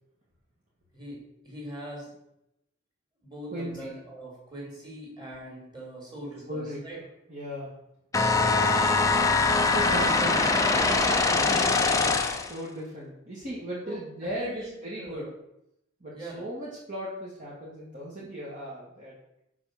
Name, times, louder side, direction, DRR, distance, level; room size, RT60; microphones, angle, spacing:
voice 1, 1.4-2.1 3.2-7.0 9.0-9.5 9.8-10.0 11.3-11.7 13.8-15.3 16.1-16.5, right 1 dB, 20° right, -3 dB, 3.1 m, -42 dB
voice 2, 3.5-3.9 6.5-6.8 7.3-7.7 9.6-15.3 16.0-19.2, equal, 35° right, -7 dB, 1.9 m, -37 dB
sound 1, 8.1-12.6, left 3 dB, 15° left, 0.6 m, -23 dB
6.0 x 5.7 x 6.6 m, 0.82 s
head